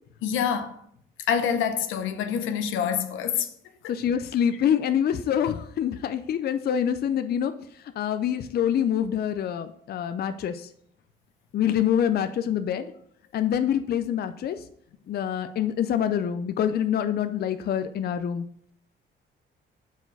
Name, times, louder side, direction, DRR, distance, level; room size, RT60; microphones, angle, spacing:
voice 1, 0.2-0.7 1.3-3.5 3.8-3.9, left 8 dB, 85° left, 0.8 m, -26 dB
voice 2, 3.9-7.5 8.0-10.7 11.5-12.9 13.3-14.6 15.1-18.4, left 9 dB, 55° left, 0.5 m, -25 dB
6.0 x 4.8 x 5.3 m
cardioid pair, 90°, 20 cm